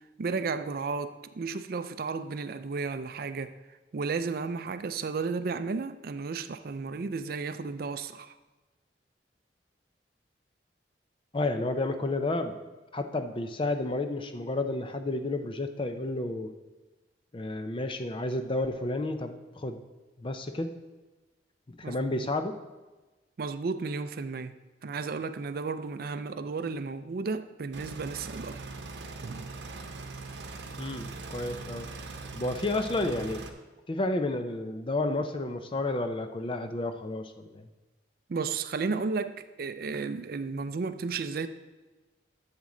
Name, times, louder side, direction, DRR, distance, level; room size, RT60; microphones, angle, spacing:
voice 1, 0.2-3.6 3.9-8.3 21.8-22.3 23.4-24.6 24.8-28.6 29.2-29.5 38.3-41.5, right 4 dB, 55° right, 11 dB, 0.4 m, -33 dB
voice 2, 11.3-12.6 12.9-16.5 17.3-19.8 20.2-20.7 21.7-22.6 30.8-31.9 32.3-33.4 33.9-37.7, left 2 dB, 30° left, 8 dB, 0.5 m, -31 dB
sound 1, 27.7-33.5, right 3 dB, 80° right, 0.9 m, -41 dB
10.5 x 7.4 x 3.8 m, 1.2 s
head